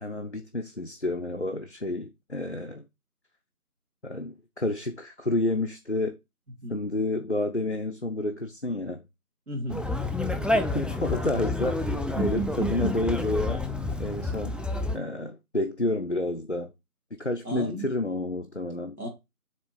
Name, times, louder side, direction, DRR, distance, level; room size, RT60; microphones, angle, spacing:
voice 1, 0.0-2.9 4.0-6.2 6.7-9.0 10.7-13.6 14.0-14.6 14.9-16.7 17.1-19.0, left 2 dB, 50° left, 0.6 m, -30 dB
voice 2, 9.5-9.8 12.2-13.0 17.4-17.8 19.0-19.1, right 2 dB, 70° right, 3.2 m, -32 dB
Conversation, 9.7-15.0, left 2 dB, ahead, 0.4 m, -29 dB
7.3 x 3.1 x 4.7 m
figure-of-eight pair, 175°, 45 cm